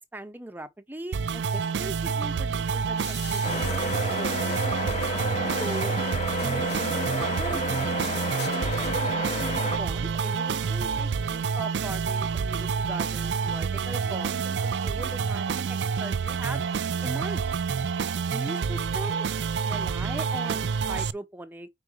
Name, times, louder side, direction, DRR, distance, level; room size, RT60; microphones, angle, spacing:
voice 1, 0.1-5.9 6.4-8.7 9.3-16.6 17.0-17.5 18.2-19.3 19.5-21.7, right 1 dB, 10° right, 0.7 m, -40 dB
sound 1, 1.1-21.1, right 6 dB, 80° right, 0.4 m, -28 dB
sound 2, 3.0-9.0, left 4 dB, 75° left, 3.1 m, -45 dB
sound 3, 3.4-9.8, left 1 dB, 35° left, 0.9 m, -31 dB
4.8 x 4.7 x 4.9 m
head